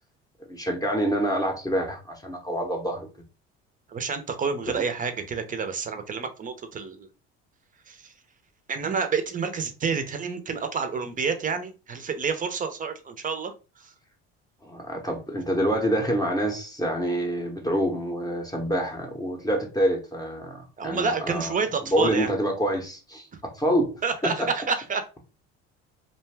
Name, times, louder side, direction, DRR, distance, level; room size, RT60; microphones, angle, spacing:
voice 1, 0.5-3.1 14.6-21.5 21.9-24.5, equal, 10° left, 0.7 m, -27 dB
voice 2, 3.9-7.1 7.9-8.1 8.7-13.9 20.8-22.3 24.0-25.2, right 5 dB, 25° right, 0.6 m, -29 dB
2.5 x 2.2 x 3.2 m
supercardioid pair, 90°, 29 cm